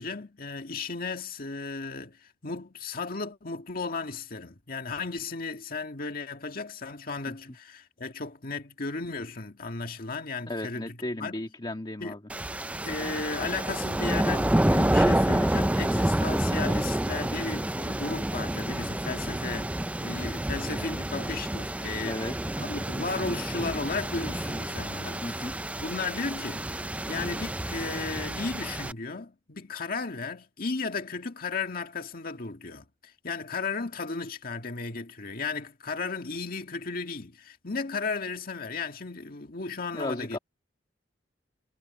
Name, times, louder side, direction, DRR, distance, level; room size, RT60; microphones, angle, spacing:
voice 1, 0.0-11.4 12.0-12.1 12.8-19.7 20.0-25.5 25.8-40.4, left 4 dB, 55° left, 1.9 m, -35 dB
voice 2, 10.5-12.2 22.0-22.3 25.2-25.5 39.9-40.4, left 1 dB, 25° left, 1.8 m, -34 dB
sound 1, 12.3-28.9, right 1 dB, 10° right, 0.5 m, -29 dB
head